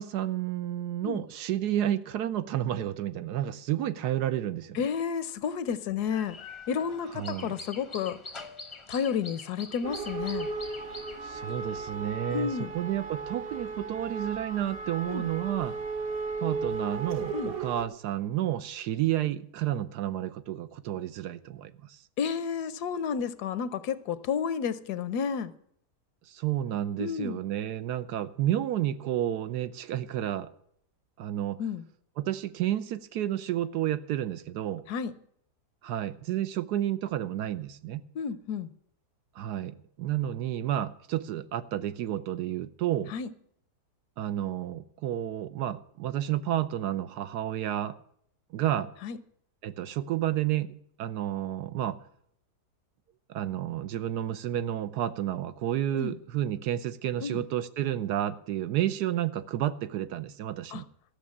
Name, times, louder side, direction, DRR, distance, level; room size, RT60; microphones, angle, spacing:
voice 1, 0.0-4.8 7.1-7.5 11.2-15.8 16.4-22.0 26.3-30.5 31.2-31.6 32.2-34.8 35.8-38.0 39.4-43.1 44.2-48.0 48.5-48.9 49.6-52.0 53.3-60.8, right 12 dB, 75° right, 1.2 m, -31 dB
voice 2, 4.7-6.4 6.7-8.2 8.9-10.5 12.3-12.7 15.1-15.3 17.3-17.5 22.2-25.5 27.0-27.4 31.6-31.8 34.9-35.1 38.1-38.7 43.1-43.3 49.0-49.2 55.9-56.2 57.2-57.4 60.7-60.8, left 7 dB, 75° left, 1.2 m, -31 dB
sound 1, 6.1-11.9, left 3 dB, 25° left, 0.6 m, -45 dB
sound 2, 9.8-17.9, right 4 dB, 45° right, 0.9 m, -35 dB
13.5 x 6.8 x 8.5 m
omnidirectional pair, 1.8 m